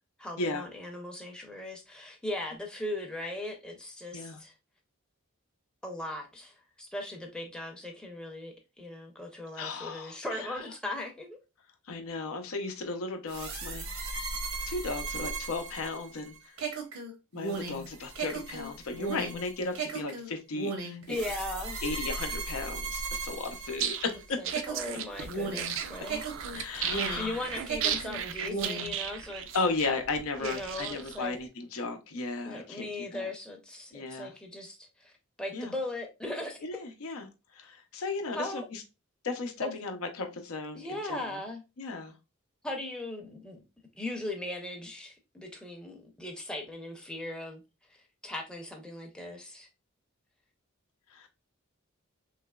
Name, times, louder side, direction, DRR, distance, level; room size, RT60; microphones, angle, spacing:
voice 1, 0.2-4.5 5.8-11.4 21.1-21.8 24.4-26.2 27.2-29.5 30.4-31.3 32.5-35.1 35.4-36.6 38.3-38.6 39.6-39.7 40.7-41.6 42.6-43.6 43.9-47.6 47.9-48.0 48.2-49.7, left 1 dB, 5° left, 0.5 m, -38 dB
voice 2, 9.6-10.5 11.9-13.9 14.7-16.5 17.3-21.2 21.8-24.4 26.5-27.4 29.5-33.3 33.9-34.3 35.5-35.7 36.6-38.8 39.2-41.4 41.8-42.1 51.1-51.3, left 3 dB, 80° left, 0.6 m, -35 dB
sound 1, 13.3-24.2 24.5-27.4 27.7-29.0, right 3 dB, 80° right, 0.8 m, -36 dB
sound 2, 23.7-31.3, right 8 dB, 65° right, 0.4 m, -35 dB
3.2 x 2.9 x 2.2 m
head